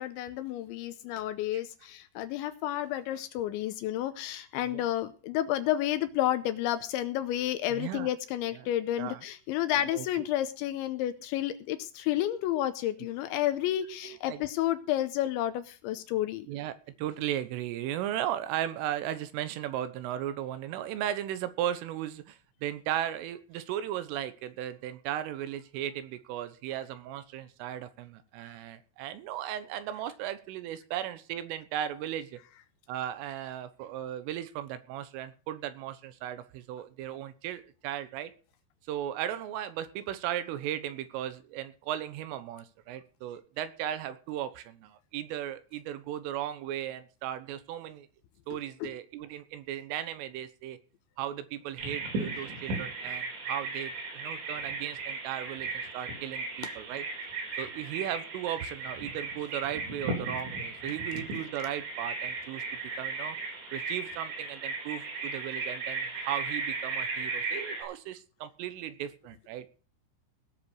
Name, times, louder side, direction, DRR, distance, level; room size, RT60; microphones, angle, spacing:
voice 1, 0.0-16.5 28.4-28.5 48.8-48.9, left 13 dB, 80° left, 11 dB, 2.9 m, -31 dB
voice 2, 7.7-8.1 8.6-8.7 9.0-9.2 9.9-10.1 14.0-14.4 16.5-16.7 17.0-32.4 32.9-38.3 38.9-48.1 48.5-50.8 51.2-57.1 57.6-62.6 63.0-63.4 63.7-69.7, right 11 dB, 80° right, 12 dB, 3.6 m, -36 dB
Bird vocalization bird call bird song, 51.8-67.8, right 3 dB, 65° right, 6.7 m, -36 dB
18.0 x 7.1 x 6.3 m, 0.38 s
omnidirectional pair, 5.8 m